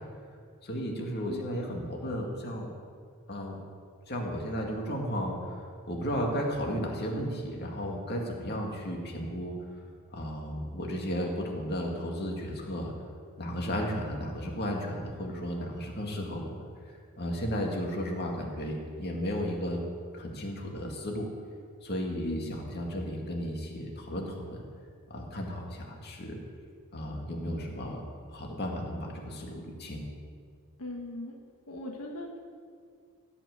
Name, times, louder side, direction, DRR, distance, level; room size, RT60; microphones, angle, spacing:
voice 1, 0.6-2.7 3.3-3.6 4.1-9.5 10.1-12.9 13.4-16.7 17.2-19.8 20.1-21.3 21.8-24.6 25.1-26.4 26.9-28.0 28.3-30.0, equal, 50° left, 0 dB, 2.2 m, -34 dB
voice 2, 22.2-22.5 30.8-31.3 31.7-32.4, left 2 dB, 85° left, 1 dB, 1.4 m, -39 dB
16.5 x 6.1 x 8.0 m, 2.1 s
head